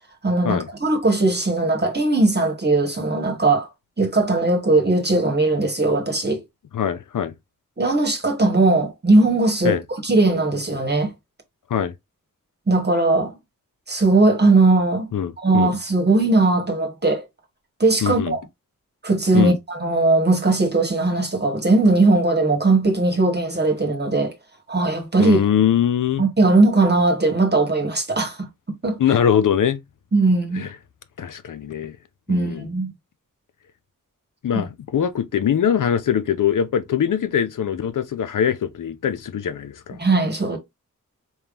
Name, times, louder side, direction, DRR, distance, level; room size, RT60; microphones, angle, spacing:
voice 1, 0.2-3.7 4.0-6.4 7.8-11.1 12.7-13.4 13.9-15.1 15.4-17.2 17.8-18.4 19.0-24.3 24.7-25.4 26.2-29.0 30.1-30.7 32.3-32.9 34.5-34.6 40.0-40.6, right 2 dB, 30° right, 1.2 m, -19 dB
voice 2, 6.7-7.3 9.6-9.8 11.7-11.9 15.1-15.7 18.0-18.3 19.3-19.6 25.2-26.3 29.0-29.8 30.5-30.7 31.2-32.0 32.3-32.7 34.4-40.0, left 9 dB, 70° left, 0.6 m, -22 dB
4.4 x 3.6 x 2.4 m
wide cardioid pair, 80°, 33 cm